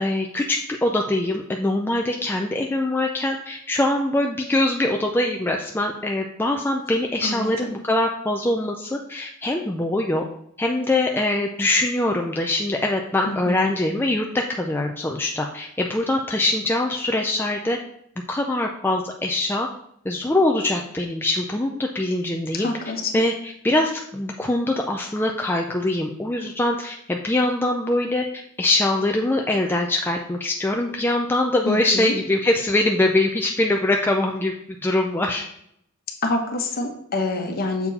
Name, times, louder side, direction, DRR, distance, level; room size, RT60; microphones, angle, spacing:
voice 1, 0.0-10.2 10.6-17.8 18.3-19.7 20.0-22.7 23.1-23.3 23.6-28.2 28.6-34.5 34.8-35.4, left 1 dB, 10° left, 1 dB, 0.4 m, -23 dB
voice 2, 7.2-7.7 13.3-13.7 22.5-23.1 31.7-32.1 36.2-37.9, left 2 dB, 45° left, 3 dB, 1.1 m, -27 dB
6.9 x 4.5 x 4.1 m, 0.73 s
head